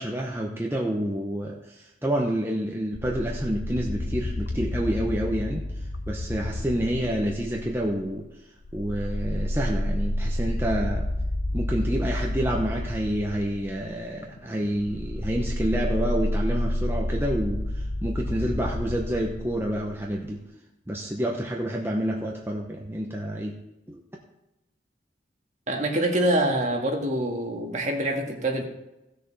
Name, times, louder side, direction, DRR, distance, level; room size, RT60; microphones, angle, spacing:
voice 1, 0.0-5.7 6.1-8.3 8.7-11.1 11.5-20.4 20.9-23.6 23.9-24.0, equal, 15° right, -1 dB, 0.9 m, -28 dB
sound 1, 2.9-8.1 8.6-20.1, left 1 dB, 65° left, 0.7 m, -30 dB
voice 2, 25.7-28.7, right 1 dB, 40° right, 1 dB, 1.7 m, -25 dB
15.5 x 6.7 x 4.1 m, 0.92 s
head